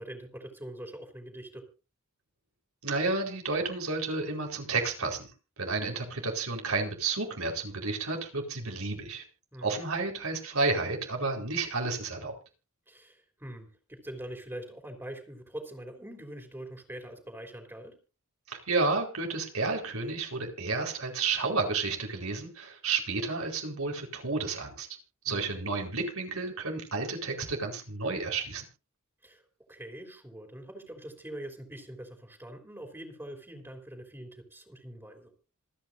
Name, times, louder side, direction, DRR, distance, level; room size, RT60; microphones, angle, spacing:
voice 1, 0.0-1.7 9.5-9.8 12.9-17.9 25.3-25.5 29.2-29.4 29.7-35.3, right 1 dB, 10° right, 3 dB, 3.2 m, -43 dB
voice 2, 2.8-5.3 5.6-9.2 9.6-12.3 18.5-24.9 25.2-28.6, right 3 dB, 80° right, 3 dB, 4.4 m, -31 dB
27.0 x 9.3 x 2.6 m, 0.32 s
head